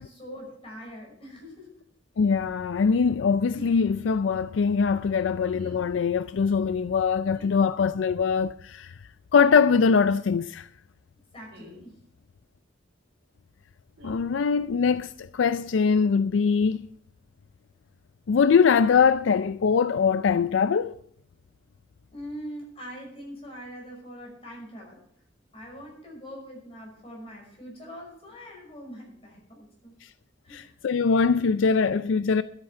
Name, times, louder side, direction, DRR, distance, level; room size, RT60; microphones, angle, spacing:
voice 1, 0.0-1.7 11.3-12.0 22.1-25.0 25.5-29.9 30.4-30.8, equal, 30° left, 5.9 m, -43 dB
voice 2, 2.2-8.9 9.3-10.7 14.0-16.8 18.3-20.9 30.5-32.4, left 5 dB, 80° left, 0.4 m, -22 dB
sound 1, 3.5-3.8 5.5-5.9 7.3-7.6 9.4-9.6 11.5-11.9 14.0-14.2, right 2 dB, 75° right, 2.9 m, -48 dB
13.0 x 8.0 x 5.7 m
head